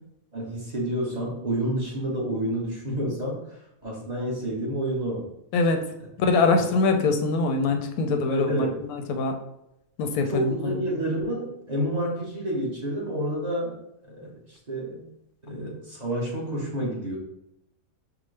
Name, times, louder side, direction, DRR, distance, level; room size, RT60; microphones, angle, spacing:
voice 1, 0.3-3.4 3.8-5.3 6.5-6.7 8.3-8.7 10.2-13.8 14.1-15.1 15.4-17.2, right 1 dB, 35° right, -4 dB, 1.0 m, -29 dB
voice 2, 5.5-5.8 6.2-9.3 10.0-10.8, left 3 dB, 90° left, 5 dB, 1.1 m, -23 dB
5.9 x 2.0 x 3.2 m, 0.83 s
omnidirectional pair, 1.5 m